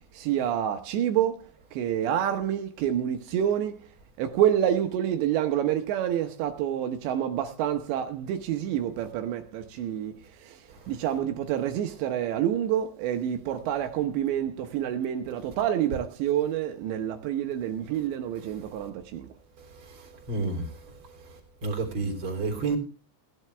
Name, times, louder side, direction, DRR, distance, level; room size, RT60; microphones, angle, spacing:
voice 1, 0.3-1.3 1.8-3.7 4.2-10.1 10.9-19.2, right 10 dB, 80° right, 3.2 m, -27 dB
voice 2, 19.8-20.7 21.6-22.8, right 3 dB, 30° right, 3.7 m, -30 dB
18.0 x 10.5 x 3.4 m
omnidirectional pair, 5.1 m